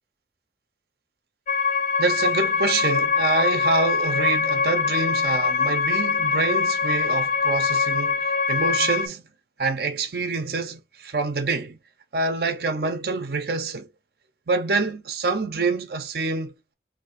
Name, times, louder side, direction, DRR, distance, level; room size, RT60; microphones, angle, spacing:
sound 1, 1.5-9.1, left 5 dB, 40° left, 0.4 m, -23 dB
voice 1, 2.0-9.2 9.6-11.8 12.1-13.9 14.5-16.7, right 3 dB, 60° right, 0.6 m, -26 dB
2.8 x 2.4 x 4.0 m
head